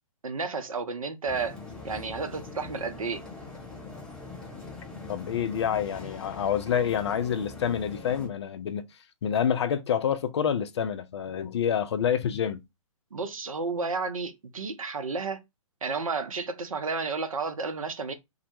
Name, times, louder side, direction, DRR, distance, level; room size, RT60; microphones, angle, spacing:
voice 1, 0.2-1.6 1.8-3.2 13.1-15.4 15.8-18.1, right 4 dB, 75° right, 0.5 m, -32 dB
sound 1, 1.2-8.3, left 3 dB, 5° left, 0.6 m, -42 dB
voice 2, 5.1-8.9 9.2-12.6, left 8 dB, 50° left, 0.4 m, -27 dB
2.1 x 2.1 x 2.9 m
figure-of-eight pair, 125°, 18 cm